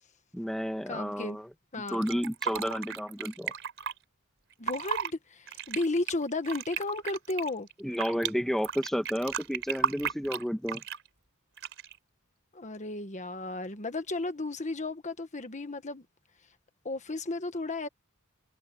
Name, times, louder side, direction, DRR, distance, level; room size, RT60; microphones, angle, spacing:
voice 1, 0.3-1.5 1.9-3.5 7.8-10.8, equal, ahead, 1.4 m, -31 dB
voice 2, 0.9-1.4 1.7-2.1 4.6-7.7 12.5-16.0 16.8-17.9, left 2 dB, 35° left, 1.4 m, -34 dB
Fill (with liquid), 1.9-3.9 4.5-5.1 5.5-8.3 8.6-11.1 11.6-12.0, right 7 dB, 60° right, 4.1 m, -34 dB
head